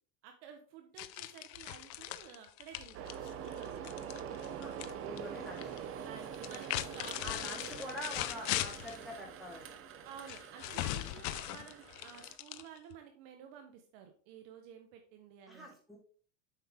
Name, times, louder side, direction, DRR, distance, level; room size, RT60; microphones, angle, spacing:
voice 1, 0.2-3.8 6.0-7.9 10.0-15.7, right 7 dB, 55° right, 5 dB, 1.4 m, -52 dB
sound 1, 1.0-4.9 5.2-5.8 6.3-9.0 10.3-13.0, left 15 dB, 75° left, 0.8 m, -39 dB
sound 2, 2.9-12.4, right 8 dB, 25° right, 0.7 m, -45 dB
voice 2, 4.6-5.8 7.2-9.8 15.5-16.0, left 1 dB, ahead, -5 dB, 3.5 m, -45 dB
7.9 x 5.7 x 3.6 m, 0.42 s
supercardioid pair, 135°, 50 cm